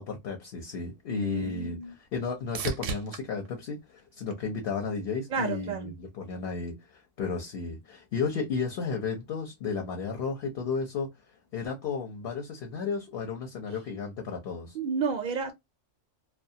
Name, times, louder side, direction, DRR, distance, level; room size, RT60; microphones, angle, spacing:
voice 1, 0.0-1.8 2.1-11.1 11.5-14.8, left 5 dB, 60° left, 0.8 m, -33 dB
sound 1, 0.8-5.0 5.5-6.2 14.0-14.1, right 5 dB, 80° right, 0.9 m, -40 dB
voice 2, 1.1-1.9 5.3-5.9 14.7-15.5, right 5 dB, 60° right, 0.5 m, -31 dB
2.3 x 2.2 x 2.6 m
omnidirectional pair, 1.3 m